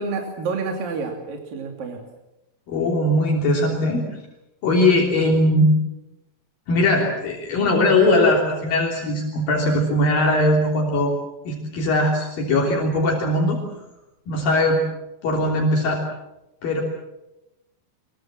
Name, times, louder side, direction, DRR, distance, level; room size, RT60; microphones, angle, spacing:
voice 1, 0.0-2.0, right 4 dB, 60° right, 2 dB, 4.4 m, -29 dB
voice 2, 2.7-4.1 4.6-5.7 6.7-11.1 11.4-13.6 14.3-14.8 15.2-16.0 16.6-16.8, left 1 dB, 60° left, 0 dB, 4.9 m, -20 dB
25.5 x 22.5 x 7.6 m, 0.93 s
omnidirectional pair, 4.6 m